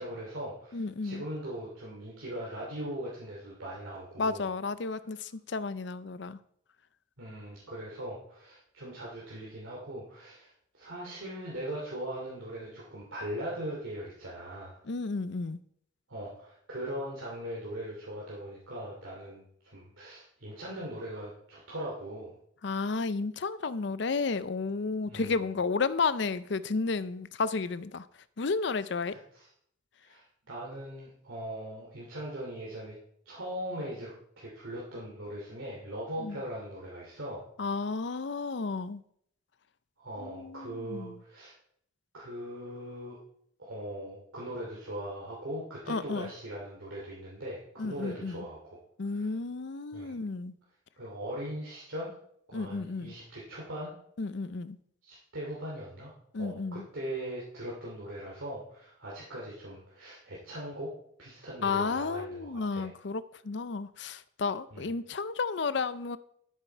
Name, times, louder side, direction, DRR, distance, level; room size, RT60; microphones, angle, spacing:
voice 1, 0.0-4.5 7.2-14.8 16.1-22.3 25.1-25.4 29.1-29.5 30.0-33.0 33.3-37.4 40.0-41.5 42.1-43.2 43.6-48.8 49.1-49.3 49.9-50.1 51.0-52.1 52.5-53.9 55.0-56.1 56.4-60.9 61.2-62.9 64.7-64.9, right 1 dB, 85° right, -5 dB, 2.7 m, -40 dB
voice 2, 0.7-1.2 4.2-6.4 14.9-15.6 22.6-28.1 28.4-29.2 36.2-36.4 37.6-39.0 40.2-41.2 45.9-46.3 47.8-48.4 49.0-50.6 52.5-53.2 54.2-54.8 56.3-56.9 61.6-66.2, left 4 dB, 60° left, 15 dB, 0.5 m, -32 dB
13.0 x 7.4 x 4.6 m, 0.68 s
head